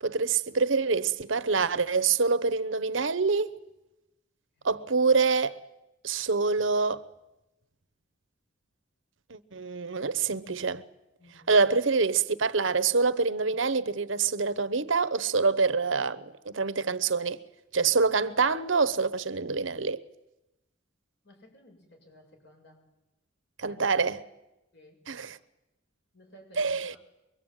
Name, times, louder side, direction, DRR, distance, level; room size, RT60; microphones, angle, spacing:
voice 1, 0.0-3.5 4.6-5.6 6.0-7.0 9.3-10.8 11.5-17.4 17.7-20.0 23.6-24.2 25.1-25.4 26.6-26.9, right 4 dB, 70° right, 1.0 m, -26 dB
voice 2, 4.6-4.9 11.2-11.7 21.2-22.8 23.7-24.0 24.7-25.0 26.1-27.0, equal, 55° left, 7.5 m, -56 dB
24.5 x 23.0 x 9.1 m
head